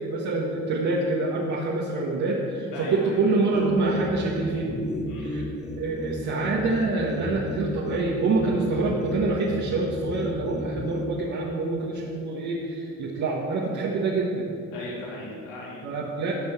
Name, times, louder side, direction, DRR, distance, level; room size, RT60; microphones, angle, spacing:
voice 1, 0.0-4.8 5.2-5.4 5.8-14.5 15.8-16.3, right 3 dB, 70° right, -3 dB, 1.6 m, -26 dB
voice 2, 2.7-3.5 5.1-5.4 14.7-15.8, left 1 dB, 90° left, -6 dB, 2.6 m, -37 dB
sound 1, 3.5-11.1, left 1 dB, 25° left, 1.4 m, -34 dB
12.0 x 5.4 x 8.1 m, 2.4 s
cardioid pair, 90°, 30 cm